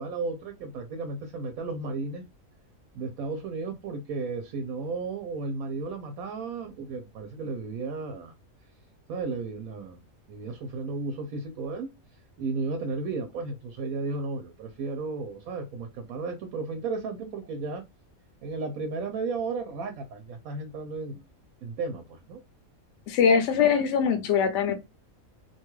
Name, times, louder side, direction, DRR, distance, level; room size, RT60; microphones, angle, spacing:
voice 1, 0.0-2.3 2.9-8.3 9.1-10.0 10.3-11.9 12.4-17.8 18.4-21.2 21.6-22.4, right 3 dB, 90° right, 1.1 m, -34 dB
voice 2, 23.1-24.7, left 6 dB, 65° left, 0.8 m, -22 dB
2.7 x 2.3 x 3.0 m
omnidirectional pair, 1.5 m